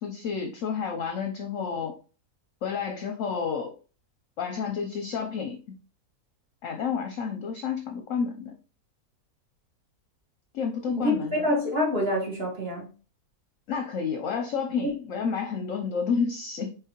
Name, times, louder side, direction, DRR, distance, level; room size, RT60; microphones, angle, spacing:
voice 1, 0.0-2.0 2.6-3.7 4.4-5.8 6.6-8.5 10.5-11.4 13.7-16.7, left 6 dB, 65° left, 0.9 m, -30 dB
voice 2, 10.9-12.9 14.8-14.9, left 1 dB, 40° right, 1.7 m, -27 dB
4.7 x 3.6 x 2.9 m
omnidirectional pair, 1.6 m